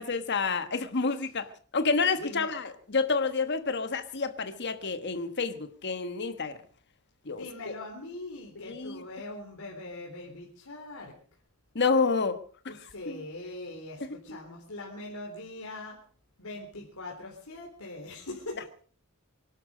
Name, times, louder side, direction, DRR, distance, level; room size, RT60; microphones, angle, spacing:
voice 1, 0.0-1.5 1.7-6.6 7.3-7.4 8.5-9.0 11.7-12.4 12.6-12.8 13.1-13.2 14.1-14.2, left 4 dB, 55° left, 10 dB, 1.4 m, -29 dB
voice 2, 2.2-2.5 7.3-11.1 12.7-16.0 16.4-18.7, left 2 dB, 80° left, -2 dB, 3.8 m, -41 dB
24.0 x 12.0 x 5.1 m, 0.44 s
head